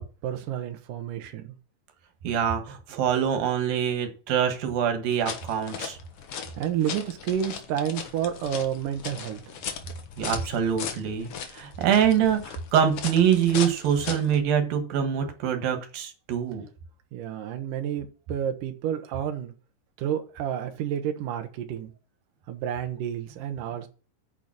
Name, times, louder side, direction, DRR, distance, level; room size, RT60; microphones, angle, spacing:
voice 1, 0.0-1.5 6.6-9.4 17.1-19.5 20.0-21.9 22.5-23.9, right 9 dB, 70° right, 2.6 m, -30 dB
voice 2, 2.2-6.0 10.2-16.7, right 8 dB, 90° right, 3.4 m, -24 dB
sound 1, 5.1-14.4, left 7 dB, 60° left, 1.6 m, -38 dB
9.3 x 6.8 x 6.0 m
omnidirectional pair, 4.0 m